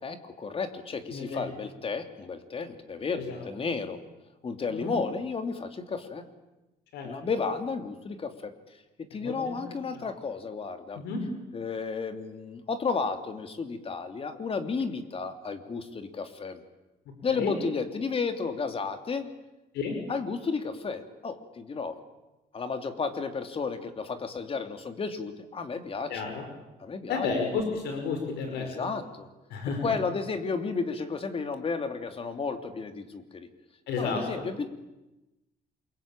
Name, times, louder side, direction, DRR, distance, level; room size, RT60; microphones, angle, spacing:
voice 1, 0.0-4.0 4.4-6.3 7.0-8.5 9.1-11.0 11.5-16.6 17.2-19.3 20.1-22.0 22.5-26.4 26.8-27.3 28.5-29.3 29.8-33.5 34.0-34.8, left 4 dB, 35° left, 7 dB, 3.1 m, -33 dB
voice 2, 26.1-26.4 27.1-28.9 29.5-29.9 33.9-34.2, left 5 dB, 80° left, 4 dB, 5.4 m, -31 dB
28.0 x 23.0 x 9.0 m, 1.0 s
cardioid pair, 110°, 17 cm